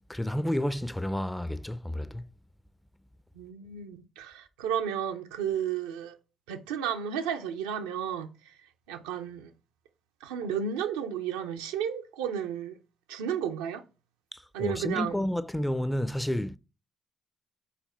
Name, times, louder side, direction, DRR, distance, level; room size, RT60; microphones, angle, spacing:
voice 1, 0.1-2.2 14.3-16.6, left 1 dB, 5° left, 0.4 m, -30 dB
voice 2, 3.3-6.2 6.5-8.5 8.9-9.5 10.2-12.8 13.1-13.8 14.5-15.1, right 8 dB, 85° right, 0.5 m, -33 dB
5.7 x 4.1 x 4.2 m
hypercardioid pair, 45°, 0 cm